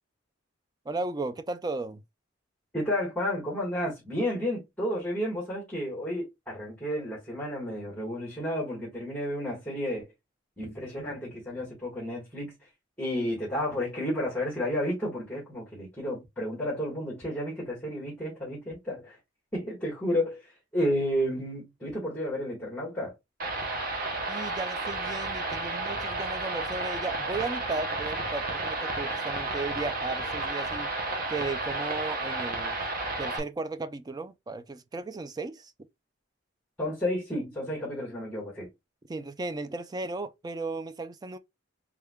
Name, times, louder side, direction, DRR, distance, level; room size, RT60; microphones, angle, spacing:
voice 1, 0.9-2.0 24.3-30.9 31.3-32.8 33.2-35.7 39.1-41.4, right 3 dB, 20° right, 0.3 m, -35 dB
voice 2, 2.7-10.1 10.6-12.5 13.0-19.2 19.5-23.1 36.8-38.7, equal, 5° left, 1.5 m, -31 dB
sound 1, 23.4-33.4, right 2 dB, 45° right, 0.8 m, -32 dB
3.5 x 3.5 x 2.2 m
head